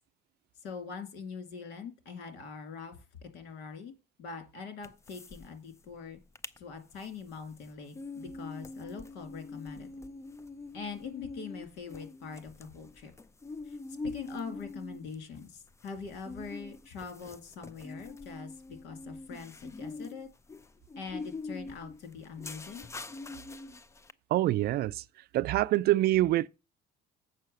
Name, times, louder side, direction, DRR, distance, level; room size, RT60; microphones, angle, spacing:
voice 1, 0.6-3.9 4.2-6.2 6.6-9.9 10.7-13.1 13.7-13.8 14.0-20.3 21.0-22.9, left 5 dB, 85° left, 2.3 m, -43 dB
sound 1, 4.8-5.5 5.7-5.8 6.2-6.6 7.0-24.1, left 3 dB, 15° left, 0.5 m, -44 dB
voice 2, 24.3-25.0 25.3-26.5, right 15 dB, 70° right, 0.4 m, -25 dB
7.4 x 5.7 x 6.5 m
cardioid pair, 110°, 17 cm